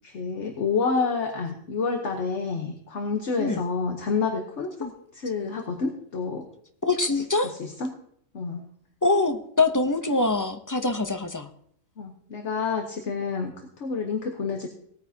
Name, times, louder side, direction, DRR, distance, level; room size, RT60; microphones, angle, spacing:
voice 1, 0.0-6.5 7.4-7.9 8.3-8.6 12.0-14.7, left 4 dB, 55° left, 4 dB, 1.3 m, -29 dB
voice 2, 6.8-7.5 9.0-11.5, left 3 dB, 20° left, 6 dB, 0.5 m, -24 dB
18.0 x 9.2 x 2.8 m, 0.66 s
omnidirectional pair, 1.5 m